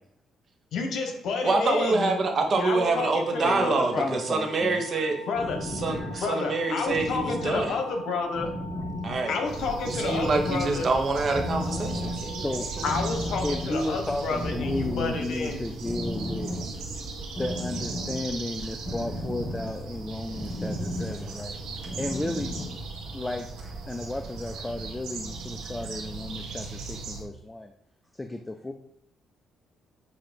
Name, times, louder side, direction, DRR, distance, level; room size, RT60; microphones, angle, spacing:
voice 1, 0.7-2.2 2.6-4.1 5.3-5.6 6.2-8.5 9.3-10.9 12.8-15.6, left 4 dB, 70° left, 5 dB, 1.1 m, -30 dB
voice 2, 1.4-5.2 5.8-7.7 9.0-9.5 9.9-12.5 12.8-12.9, right 3 dB, 40° right, 3 dB, 1.1 m, -26 dB
sound 1, 2.9-12.9, equal, 65° right, 1.0 m, -44 dB
voice 3, 3.3-5.3 5.9-6.2 12.0-12.8 13.4-16.5 17.4-21.6 22.0-22.6 23.1-27.7 28.2-28.7, left 1 dB, 10° left, 5 dB, 0.4 m, -34 dB
sound 2, 5.3-22.8, left 1 dB, 35° left, 1.5 m, -36 dB
sound 3, 9.5-27.2, right 4 dB, 85° right, 1.4 m, -38 dB
7.7 x 2.8 x 5.2 m, 0.74 s
cardioid pair, 120°, 0 cm